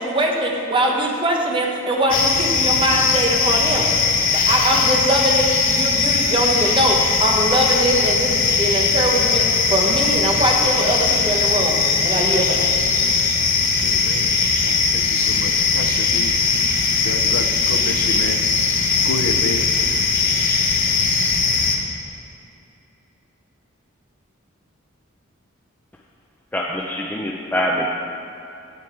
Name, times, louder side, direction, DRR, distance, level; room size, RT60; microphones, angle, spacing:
voice 1, 0.0-3.9 4.3-12.7, right 1 dB, 25° right, 0 dB, 1.0 m, -21 dB
sound 1, 2.1-21.8, left 4 dB, 40° left, 0.8 m, -19 dB
voice 2, 13.8-14.4 14.6-16.3 17.0-18.4 19.0-19.7, left 3 dB, 85° left, 7 dB, 0.6 m, -29 dB
voice 3, 26.5-27.9, equal, 10° left, -2 dB, 0.5 m, -24 dB
8.7 x 8.3 x 4.5 m, 2.8 s
head